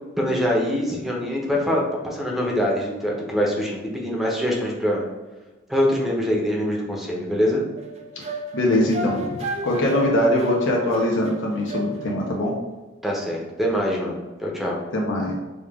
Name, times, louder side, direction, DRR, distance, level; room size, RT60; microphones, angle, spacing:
voice 1, 0.2-5.0 5.7-7.6 13.0-14.8, equal, ahead, -2 dB, 0.8 m, -24 dB
sound 1, 7.8-12.3, right 1 dB, 30° right, 0.4 m, -32 dB
voice 2, 8.2-12.6 14.9-15.4, left 1 dB, 65° left, -2 dB, 0.8 m, -22 dB
5.2 x 2.5 x 3.5 m, 1.2 s
head